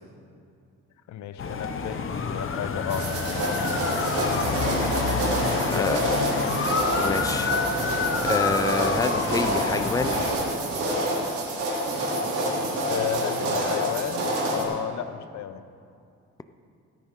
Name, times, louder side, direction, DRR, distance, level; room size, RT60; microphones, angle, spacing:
voice 1, 1.1-3.1 5.7-6.6 12.9-15.6, left 9 dB, 70° left, 11 dB, 0.7 m, -32 dB
sound 1, 1.4-10.3, left 5 dB, 45° left, 1.1 m, -28 dB
sound 2, 2.9-14.6, right 1 dB, 90° right, 3.2 m, -27 dB
voice 2, 5.7-6.0 7.0-7.5 8.2-10.2, left 3 dB, 10° left, 10 dB, 0.6 m, -27 dB
17.5 x 9.8 x 3.8 m, 2.4 s
cardioid pair, 90°, 30 cm